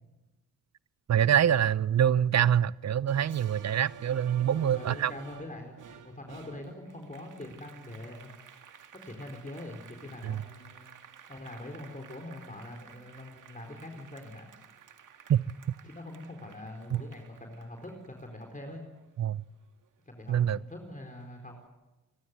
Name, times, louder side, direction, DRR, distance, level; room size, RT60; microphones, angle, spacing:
voice 1, 1.1-5.1 10.2-10.4 15.3-15.4 16.9-17.0 19.2-19.4 20.3-20.6, right 9 dB, 55° right, 0.7 m, -25 dB
Applause, 3.1-19.9 20.3-21.5, right 7 dB, 70° right, 2.0 m, -53 dB
voice 2, 4.5-8.3 8.9-10.9 11.3-14.5 15.8-18.8 20.1-21.6, left 1 dB, 25° left, 4.4 m, -43 dB
29.0 x 12.5 x 9.5 m
cardioid pair, 55°, 32 cm